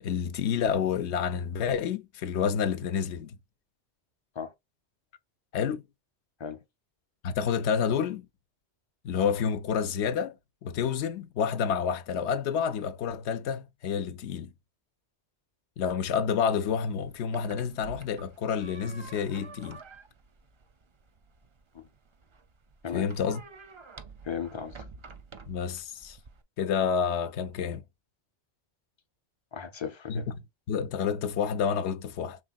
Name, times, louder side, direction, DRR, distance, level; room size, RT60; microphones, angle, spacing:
voice 1, 0.0-3.4 5.5-5.8 7.2-8.3 9.0-10.3 10.6-14.5 15.8-19.8 22.9-23.4 25.5-26.2 26.6-27.8 30.1-32.4, left 7 dB, 80° left, 0.9 m, -29 dB
sound 1, 16.9-26.4, right 4 dB, 40° right, 0.4 m, -50 dB
voice 2, 24.2-24.8 29.5-30.3, left 7 dB, 35° left, 0.5 m, -36 dB
5.2 x 3.5 x 2.4 m
omnidirectional pair, 1.1 m